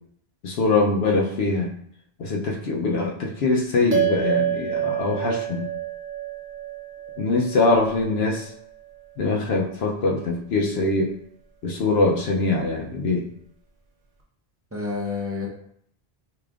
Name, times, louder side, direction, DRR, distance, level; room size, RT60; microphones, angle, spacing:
voice 1, 0.4-1.7 2.2-5.7 7.2-8.5 9.2-11.1 11.6-13.2, left 3 dB, 80° left, 0 dB, 0.8 m, -23 dB
sound 1, 3.9-8.6, right 9 dB, 55° right, 0.8 m, -28 dB
voice 2, 14.7-15.5, left 4 dB, 15° right, -3 dB, 0.7 m, -29 dB
4.9 x 2.9 x 2.4 m, 0.66 s
omnidirectional pair, 1.0 m